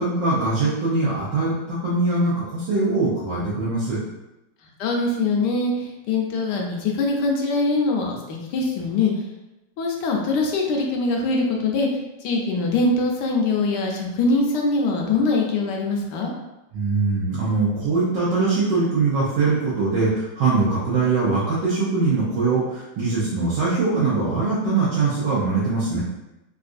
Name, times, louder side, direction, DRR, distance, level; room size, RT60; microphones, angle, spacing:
voice 1, 0.0-4.1 16.7-26.0, right 3 dB, 85° right, -8 dB, 1.5 m, -22 dB
voice 2, 4.8-9.1 9.8-11.9 12.2-16.3, left 3 dB, 75° left, 0 dB, 1.2 m, -23 dB
3.9 x 2.4 x 2.5 m, 0.96 s
omnidirectional pair, 1.9 m